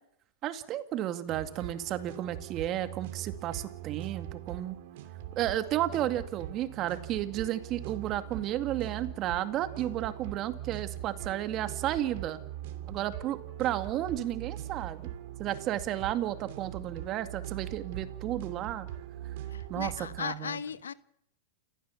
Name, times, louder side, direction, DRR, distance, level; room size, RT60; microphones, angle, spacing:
voice 1, 0.4-4.8 5.4-12.4 12.9-15.1 15.4-18.9 19.7-20.6, right 12 dB, 35° right, 9 dB, 2.2 m, -33 dB
sound 1, 1.3-20.2, right 12 dB, 60° right, 2.8 m, -41 dB
voice 2, 19.5-20.9, left 7 dB, 90° left, 15 dB, 1.1 m, -37 dB
29.0 x 15.0 x 7.3 m, 0.74 s
hypercardioid pair, 120°, 0 cm